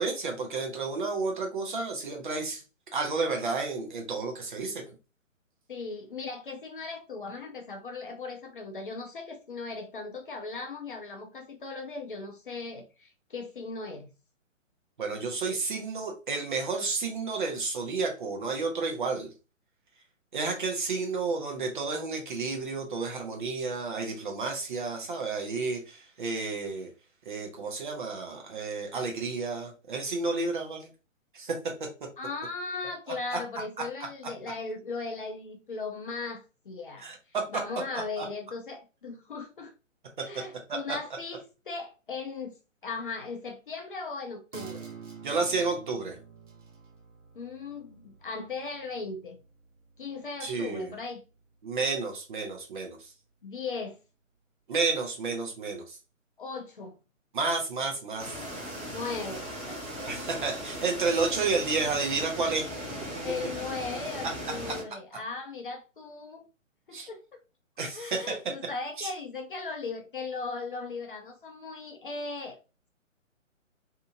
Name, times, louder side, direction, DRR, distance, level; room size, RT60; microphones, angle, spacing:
voice 1, 0.0-2.6 2.9-4.9 15.0-19.3 20.3-26.9 27.3-30.9 31.3-31.9 37.0-37.5 38.2-38.3 40.2-40.3 40.7-40.8 45.2-46.2 50.4-50.9 51.6-53.0 54.7-56.0 57.3-58.3 60.0-62.7 66.9-67.1 67.8-68.4 69.0-69.1, right 4 dB, 40° right, 0.7 m, -31 dB
voice 2, 5.7-14.1 32.2-37.1 37.5-39.7 40.2-42.6 42.8-44.9 47.3-49.4 50.0-51.2 53.4-54.0 56.4-56.9 58.9-59.8 63.2-66.4 66.9-67.2 67.9-72.6, left 4 dB, 40° left, 0.5 m, -38 dB
sound 1, 44.5-51.5 51.9-52.0, right 6 dB, 65° right, 0.8 m, -49 dB
sound 2, 58.2-64.8, equal, 10° right, 0.8 m, -38 dB
2.7 x 2.5 x 2.5 m
figure-of-eight pair, 130°, 40 cm